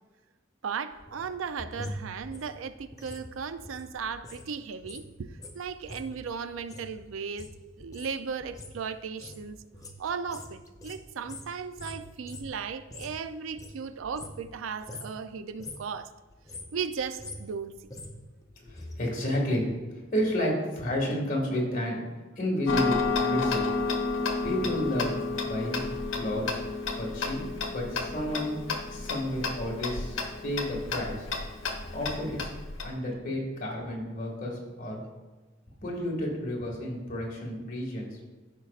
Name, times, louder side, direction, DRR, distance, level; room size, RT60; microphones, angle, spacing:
voice 1, 0.6-5.3 5.5-7.5 7.8-9.6 10.0-16.1 16.7-17.8, right 6 dB, 85° right, 0.4 m, -36 dB
sound 1, 0.9-4.5 4.7-13.2 13.5-14.6 14.8-15.2 15.5-15.9 16.3-19.0 19.2-19.3, left 1 dB, 15° left, 0.7 m, -44 dB
voice 2, 18.6-19.6 19.9-22.0 22.4-23.6 24.4-25.8 26.1-26.6 26.9-27.4 27.7-28.6 28.9-31.3 31.9-32.5 32.8-35.0 35.8-38.2, left 1 dB, 45° left, 2.0 m, -31 dB
Tick-tock, 22.7-32.9, left 3 dB, 85° left, 1.0 m, -31 dB
13.5 x 5.4 x 2.4 m
head